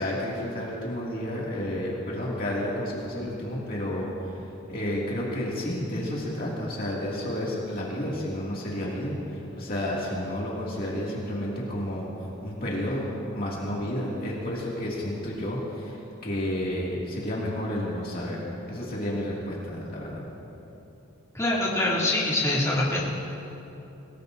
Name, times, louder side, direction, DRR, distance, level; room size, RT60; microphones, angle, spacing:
voice 1, 0.0-4.1 4.7-9.2 9.5-12.1 12.4-16.0 16.2-20.2, left 1 dB, 40° left, -5 dB, 2.4 m, -31 dB
voice 2, 21.3-23.0, left 2 dB, 15° left, -8 dB, 2.8 m, -24 dB
25.0 x 18.0 x 2.7 m, 3.0 s
head